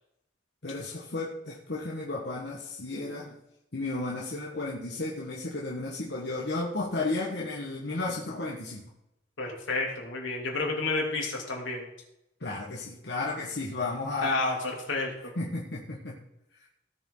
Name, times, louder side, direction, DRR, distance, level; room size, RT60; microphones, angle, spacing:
voice 1, 0.6-3.4 3.7-8.9 12.4-14.4 15.3-16.2 16.5-16.6, left 2 dB, 55° left, -3 dB, 1.5 m, -33 dB
voice 2, 9.4-11.9 14.2-15.3, left 3 dB, 75° left, -1 dB, 3.2 m, -30 dB
17.5 x 7.0 x 3.9 m, 0.87 s
head